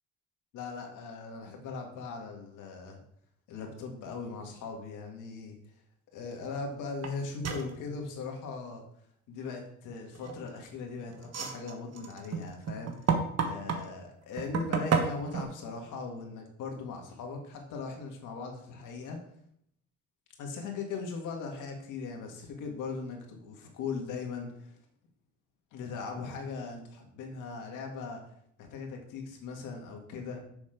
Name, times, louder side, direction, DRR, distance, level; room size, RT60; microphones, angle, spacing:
voice 1, 0.5-3.0 3.5-5.6 6.1-8.8 9.3-13.1 13.4-19.2 20.4-24.8 25.7-28.2 28.6-30.4, left 4 dB, 90° left, 2 dB, 2.0 m, -39 dB
sound 1, 7.0-7.1 7.4-7.7 10.2-10.6 11.2-13.9 14.4-15.4, right 6 dB, 55° right, 1.4 m, -30 dB
7.1 x 6.3 x 5.2 m, 0.68 s
cardioid pair, 90°, 30 cm